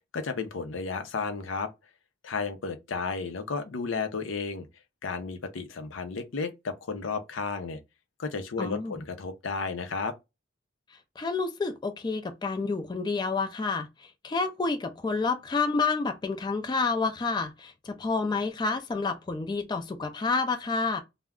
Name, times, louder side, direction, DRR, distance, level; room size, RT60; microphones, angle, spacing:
voice 1, 0.1-1.7 2.2-4.6 5.0-7.8 8.2-10.1, left 4 dB, 85° left, 0.5 m, -33 dB
voice 2, 8.6-8.9 11.2-13.9 14.2-21.0, left 4 dB, 20° left, 0.3 m, -29 dB
2.3 x 2.0 x 3.4 m
head